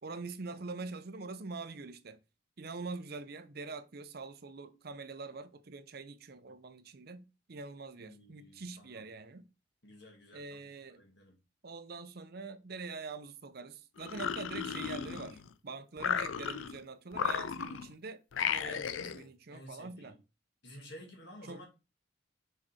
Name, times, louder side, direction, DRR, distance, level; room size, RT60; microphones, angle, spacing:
voice 1, 0.0-2.2 2.6-9.5 10.3-11.0 11.6-20.2 21.4-21.6, right 3 dB, 50° right, 0.6 m, -44 dB
voice 2, 8.0-9.1 9.8-10.6 11.0-11.3 18.4-20.2 20.6-21.7, left 1 dB, 55° left, 2.1 m, -52 dB
sound 1, 14.0-15.5 16.0-16.8 17.1-17.9 18.3-19.2, left 7 dB, 75° left, 0.5 m, -35 dB
5.0 x 5.0 x 4.2 m
head